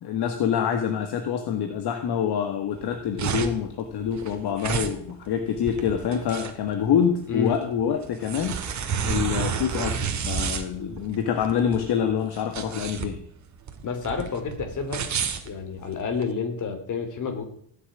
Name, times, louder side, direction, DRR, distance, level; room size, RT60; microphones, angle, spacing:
voice 1, 0.0-8.6 9.0-13.2, left 8 dB, 55° left, 6 dB, 1.9 m, -26 dB
sound 1, 2.8-16.3, right 6 dB, 40° right, 2.1 m, -31 dB
voice 2, 13.8-15.0 15.5-17.4, left 5 dB, 40° left, 6 dB, 3.8 m, -29 dB
17.5 x 8.0 x 9.9 m, 0.63 s
cardioid pair, 160°, 46 cm